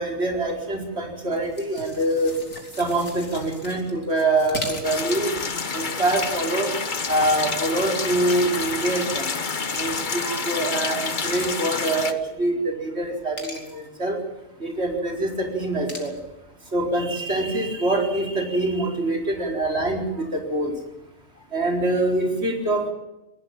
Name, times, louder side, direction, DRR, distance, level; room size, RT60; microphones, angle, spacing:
voice 1, 0.0-2.3 2.8-5.3 5.7-6.7 7.1-9.3 9.7-14.2 14.6-16.2 16.7-20.7 21.5-22.9, right 2 dB, 50° right, 2 dB, 4.9 m, -25 dB
sound 1, 1.2-5.2 6.2-6.7 7.2-7.6 8.3-9.0 9.6-9.8 11.1-11.4 13.4-13.9 15.9-16.2, left 2 dB, 80° left, 3.8 m, -39 dB
sound 2, 4.8-12.1, left 4 dB, 40° left, 1.3 m, -28 dB
20.5 x 20.0 x 7.5 m, 0.96 s
omnidirectional pair, 1.4 m